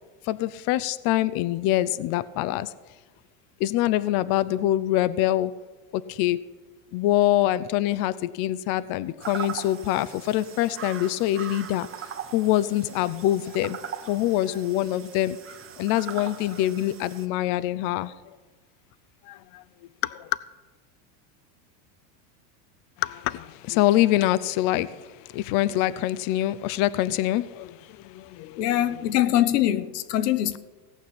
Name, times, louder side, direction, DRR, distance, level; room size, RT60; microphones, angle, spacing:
voice 1, 0.2-2.7 3.6-5.5 5.9-6.4 6.9-13.8 14.1-15.4 15.8-18.1 19.2-19.6 20.0-20.3 23.0-28.6, left 14 dB, 45° left, 0.5 m, -25 dB
sound 1, 9.2-17.3, right 8 dB, 30° right, 1.2 m, -40 dB
voice 2, 28.6-30.6, left 12 dB, 90° left, 1.1 m, -23 dB
17.5 x 5.9 x 8.6 m
supercardioid pair, 130°, 47 cm